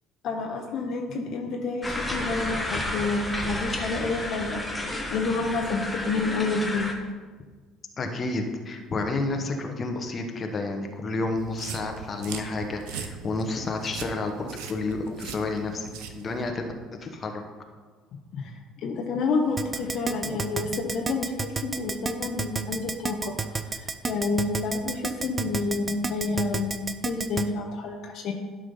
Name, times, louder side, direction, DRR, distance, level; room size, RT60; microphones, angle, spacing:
voice 1, 0.2-6.9 18.3-18.5 18.8-23.3 23.8-26.8 27.0-28.3, left 3 dB, 60° left, 2 dB, 1.0 m, -29 dB
sound 1, 1.8-6.9, left 1 dB, 10° left, 1.5 m, -32 dB
voice 2, 8.0-15.9 16.1-16.7 17.0-17.4, left 3 dB, 35° left, 4 dB, 1.1 m, -30 dB
sound 2, 11.4-16.5, right 7 dB, 70° right, 0.7 m, -40 dB
Keyboard (musical), 19.6-27.4, right 4 dB, 30° right, 0.6 m, -29 dB
11.0 x 3.7 x 5.4 m, 1.4 s
hypercardioid pair, 60°, 0 cm